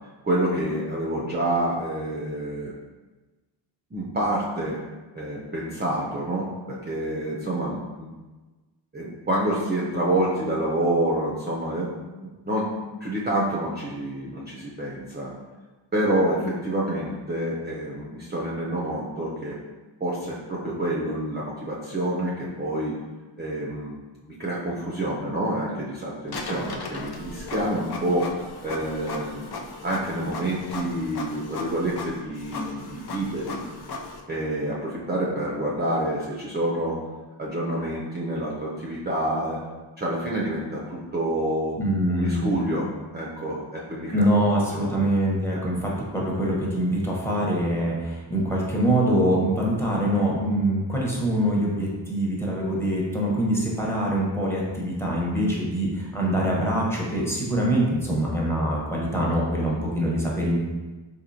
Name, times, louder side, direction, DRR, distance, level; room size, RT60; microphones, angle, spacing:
voice 1, 0.2-2.7 3.9-4.8 5.1-8.1 8.9-11.9 12.2-12.7 13.0-15.3 15.9-19.5 20.0-23.0 23.4-28.3 28.6-29.5 29.8-33.6 34.3-37.0 37.4-39.6 40.0-41.8 42.1-42.9 43.1-44.3 44.7-45.1 45.5-45.6, right 1 dB, 25° right, -5 dB, 0.5 m, -28 dB
Printer, 26.3-34.2, left 3 dB, 60° left, 0.5 m, -36 dB
voice 2, 41.8-42.5 44.1-60.6, right 1 dB, 5° left, -4 dB, 0.8 m, -24 dB
4.3 x 2.7 x 2.6 m, 1.2 s
wide cardioid pair, 105°, 45 cm